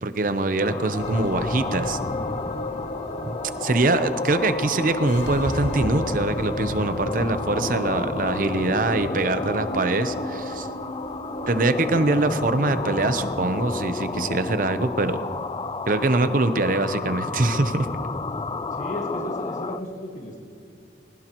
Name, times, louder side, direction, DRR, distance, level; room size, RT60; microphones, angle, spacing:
voice 1, 0.0-2.0 3.3-10.7 11.5-15.2 15.9-17.9, right 2 dB, 50° right, 10 dB, 0.7 m, -23 dB
voice 2, 0.5-0.9 18.7-20.4, left 1 dB, 45° left, -1 dB, 1.6 m, -35 dB
Huge Abstract Insects, 0.6-19.8, left 3 dB, 25° left, 0.3 m, -32 dB
sound 1, 1.0-19.5, left 1 dB, 85° left, 2.2 m, -34 dB
20.5 x 19.0 x 3.0 m, 2.6 s
head